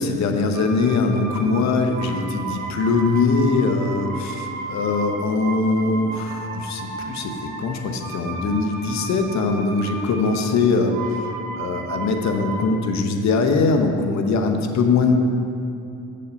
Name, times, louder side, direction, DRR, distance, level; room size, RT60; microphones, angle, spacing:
voice 1, 0.0-10.9 11.6-15.2, left 4 dB, 65° left, 5 dB, 0.9 m, -21 dB
sound 1, 0.5-12.7, right 3 dB, 85° right, 1.0 m, -33 dB
6.6 x 5.3 x 6.8 m, 2.7 s
cardioid pair, 90°, 30 cm